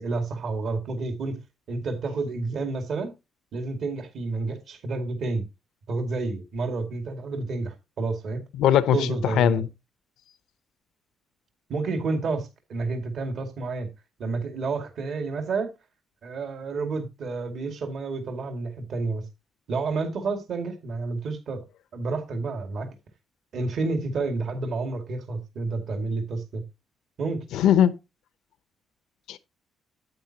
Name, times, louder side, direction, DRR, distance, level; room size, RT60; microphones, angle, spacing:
voice 1, 0.0-1.4 1.7-3.1 3.5-5.4 5.9-8.4 8.9-9.5 11.7-13.9 14.2-15.7 16.2-19.3 19.7-21.6 21.9-22.9 23.5-26.7 27.2-27.4, right 3 dB, 65° right, 2.1 m, -30 dB
voice 2, 8.6-9.7 27.5-28.0 29.3-29.4, left 10 dB, 85° left, 0.7 m, -20 dB
9.1 x 8.8 x 2.8 m
cardioid pair, 90°, 0 cm